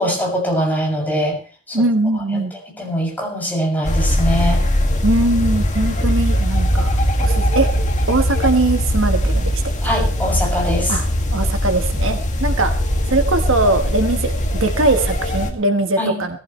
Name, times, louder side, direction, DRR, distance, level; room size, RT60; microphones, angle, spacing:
voice 1, 0.0-1.4 1.7-1.8 2.1-4.6 9.8-11.0 16.0-16.2, equal, 10° left, -2 dB, 7.1 m, -22 dB
voice 2, 1.7-2.5 5.0-7.7 8.1-9.6 10.9-11.0 11.3-12.7 13.1-14.3 14.6-16.4, right 2 dB, 65° right, 6 dB, 1.4 m, -20 dB
sound 1, 3.8-15.5, equal, 35° left, 2.2 m, -20 dB
20.5 x 15.0 x 3.3 m, 0.37 s
head